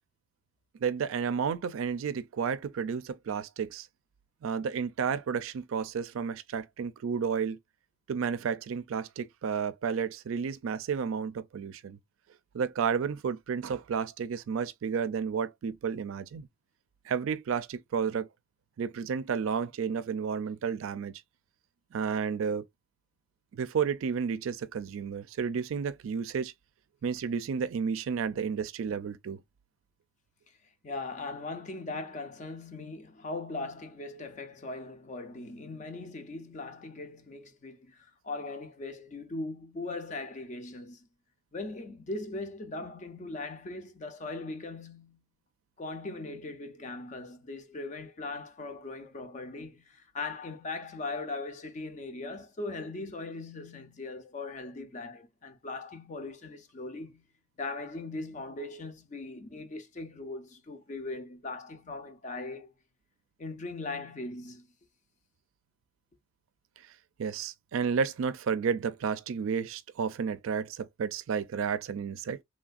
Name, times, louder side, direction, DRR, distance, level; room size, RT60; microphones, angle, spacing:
voice 1, 0.8-3.9 4.4-7.6 8.1-12.0 12.5-16.5 17.1-18.3 18.8-21.2 21.9-22.6 23.5-26.5 27.0-29.4 67.2-72.4, right 6 dB, 80° right, 0.4 m, -31 dB
voice 2, 30.8-41.1 41.5-45.2 45.8-57.3 57.6-62.7 63.4-64.7, left 3 dB, 35° left, 0.5 m, -39 dB
3.2 x 2.4 x 2.4 m
head